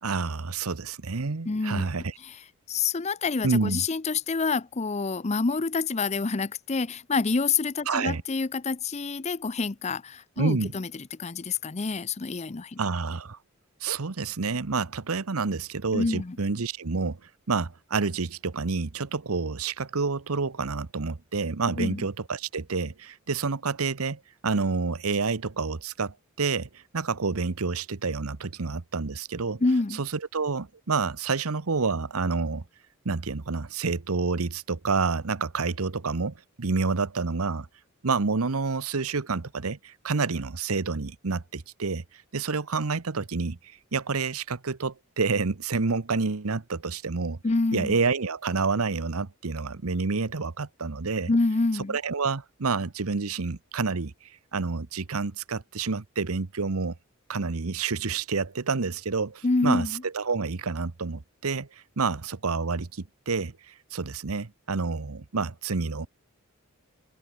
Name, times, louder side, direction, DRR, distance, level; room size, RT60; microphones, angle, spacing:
voice 1, 0.0-2.1 3.4-3.8 7.9-8.2 10.4-10.7 12.8-13.4 13.8-17.2 17.5-29.6 30.0-32.6 33.0-37.7 38.0-42.0 42.3-43.6 43.9-47.4 47.7-51.3 51.9-54.1 54.5-56.9 57.3-61.7 62.0-66.1, right 4 dB, 90° right, 1.0 m, -28 dB
voice 2, 1.5-1.9 2.2-2.3 2.7-12.8 15.9-16.4 21.8-22.0 29.6-30.0 47.4-48.0 51.3-52.0 59.4-60.0, left 3 dB, 30° left, 0.6 m, -27 dB
head